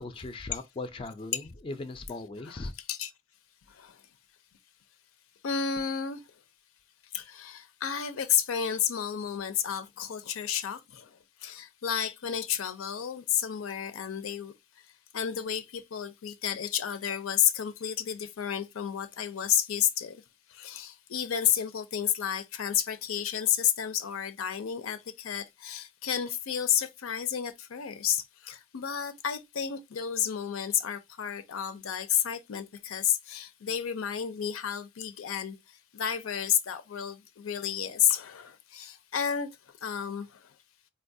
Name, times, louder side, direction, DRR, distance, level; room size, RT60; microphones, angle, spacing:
voice 1, 0.0-2.7, left 2 dB, 25° left, 0.3 m, -38 dB
voice 2, 2.2-3.1 3.7-4.0 5.4-6.2 7.1-14.5 15.1-20.2 20.5-35.6 35.9-39.5 39.8-40.5, left 9 dB, 85° left, 0.5 m, -31 dB
4.1 x 2.2 x 2.6 m
head